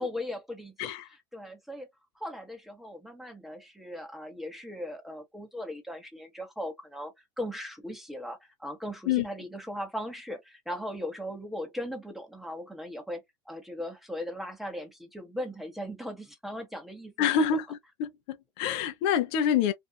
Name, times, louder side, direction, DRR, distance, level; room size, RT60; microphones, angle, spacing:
voice 1, 0.0-1.9 2.2-17.6, left 1 dB, ahead, 1.0 m, -38 dB
voice 2, 17.2-19.7, left 8 dB, 65° left, 0.6 m, -27 dB
2.6 x 2.4 x 2.2 m
supercardioid pair, 120°, 16 cm